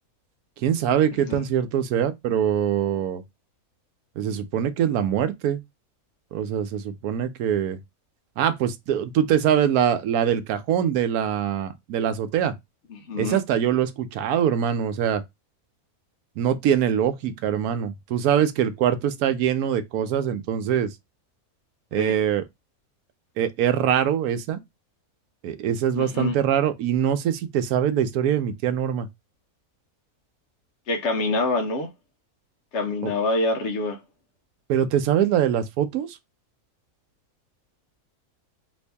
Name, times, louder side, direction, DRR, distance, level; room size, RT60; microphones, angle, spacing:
voice 1, 0.6-3.2 4.2-5.6 6.3-7.8 8.4-12.5 13.2-15.2 16.4-20.9 21.9-22.4 23.4-24.6 25.4-29.1 33.0-33.1 34.7-36.2, right 9 dB, 80° right, 1.1 m, -23 dB
voice 2, 12.9-13.4 22.0-22.1 25.9-26.4 30.9-31.9 32.7-34.0, left 2 dB, 60° left, 0.9 m, -26 dB
3.0 x 2.7 x 3.3 m
omnidirectional pair, 1.6 m